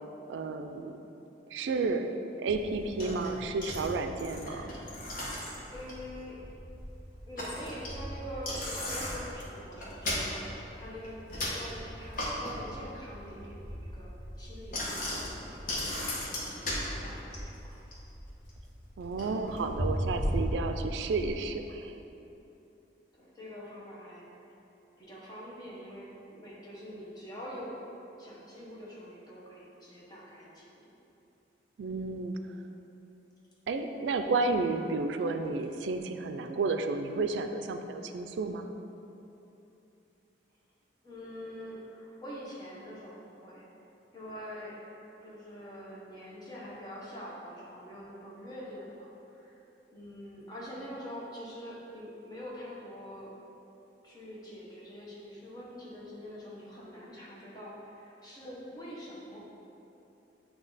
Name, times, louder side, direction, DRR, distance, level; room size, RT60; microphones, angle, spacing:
voice 1, 0.3-1.0 1.5-2.1 2.4-4.7 19.0-21.9 31.8-32.4 33.7-38.7, right 3 dB, 90° right, 7 dB, 0.3 m, -32 dB
Bicycle, 2.5-21.3, equal, 50° left, 1.1 m, -37 dB
voice 2, 5.7-6.4 7.3-14.1 14.4-15.8 16.2-17.8 23.2-24.3 25.0-27.8 28.2-30.9 41.0-43.6 44.1-44.8 45.2-49.5 49.9-53.3 54.0-59.4, equal, 25° left, -6 dB, 1.1 m, -45 dB
8.4 x 2.8 x 4.0 m, 2.9 s
head